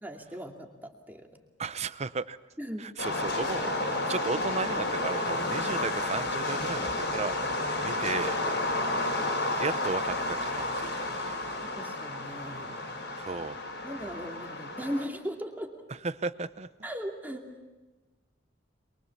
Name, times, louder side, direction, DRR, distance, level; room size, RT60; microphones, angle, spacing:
voice 1, 0.0-1.3 2.6-2.8 11.8-12.9 13.8-15.7 16.8-17.5, equal, 10° right, 2 dB, 2.5 m, -38 dB
voice 2, 1.6-2.4 2.8-3.8 4.1-7.3 7.8-8.4 9.6-11.4 13.2-13.6 16.0-16.7, right 4 dB, 35° right, 14 dB, 0.7 m, -34 dB
sound 1, 3.0-15.0, left 2 dB, 70° left, 4.6 m, -31 dB
23.5 x 23.0 x 7.2 m, 1.2 s
head